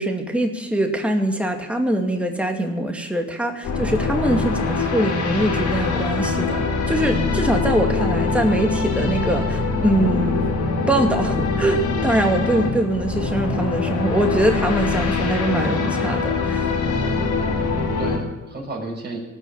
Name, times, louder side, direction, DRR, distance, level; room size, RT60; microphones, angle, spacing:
voice 1, 0.0-10.5 10.9-16.6, right 1 dB, 5° right, 2 dB, 2.4 m, -23 dB
sound 1, 3.6-18.2, left 4 dB, 70° left, 4.1 m, -23 dB
voice 2, 17.4-19.2, right 2 dB, 35° right, 0 dB, 6.0 m, -33 dB
18.5 x 6.4 x 9.9 m, 1.1 s
cardioid pair, 90°, 30 cm